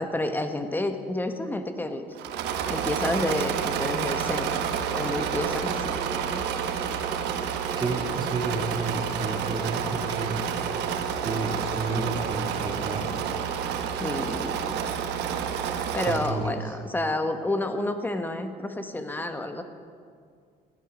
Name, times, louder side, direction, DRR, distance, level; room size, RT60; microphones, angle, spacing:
voice 1, 0.0-2.0 2.7-4.5 4.9-6.0 6.3-6.4 14.0-14.7 15.9-19.6, left 2 dB, 10° left, 7 dB, 1.1 m, -30 dB
Engine / Mechanisms, 2.2-16.4, right 7 dB, 90° right, 1.0 m, -29 dB
voice 2, 7.8-10.4 11.2-13.1 16.1-16.6, right 3 dB, 25° right, 0 dB, 2.6 m, -31 dB
16.5 x 12.0 x 5.1 m, 2.1 s
cardioid pair, 110°, 17 cm